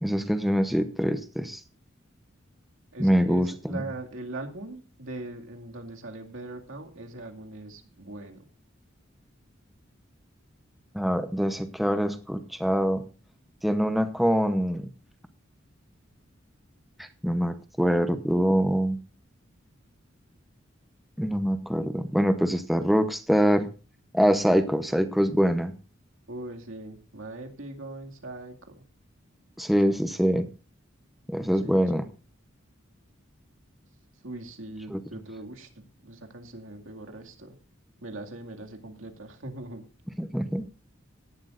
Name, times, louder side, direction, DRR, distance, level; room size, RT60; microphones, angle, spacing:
voice 1, 0.0-1.6 3.0-3.8 10.9-13.0 13.6-14.9 17.0-19.0 21.2-23.7 24.1-25.7 29.6-30.5 31.3-32.1 34.9-35.0 40.2-40.6, equal, ahead, 8 dB, 0.8 m, -24 dB
voice 2, 2.9-8.4 11.5-11.6 26.3-28.8 29.9-30.0 31.6-31.8 34.2-37.6 38.0-39.8, right 2 dB, 85° right, 3 dB, 2.2 m, -40 dB
17.0 x 11.5 x 2.5 m, 0.35 s
head